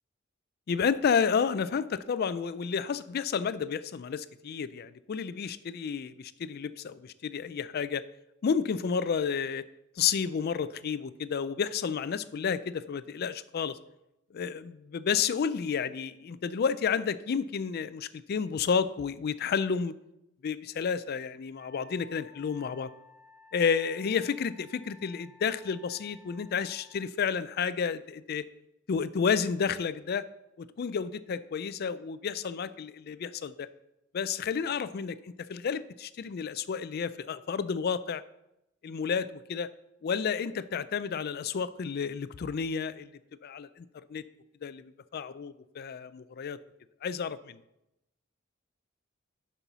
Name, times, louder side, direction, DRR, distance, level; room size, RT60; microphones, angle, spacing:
voice 1, 0.7-8.0 8.4-9.6 10.0-13.8 14.3-19.9 20.4-22.9 23.5-28.5 28.9-30.3 30.6-33.7 34.1-38.2 38.8-39.7 40.0-43.1 43.4-44.2 44.6-46.6 47.0-47.6, left 6 dB, 50° left, 15 dB, 0.4 m, -31 dB
Wind instrument woodwind instrument, 21.5-27.1, left 3 dB, 75° right, 2.2 m, -56 dB
6.8 x 5.6 x 6.0 m, 0.88 s
head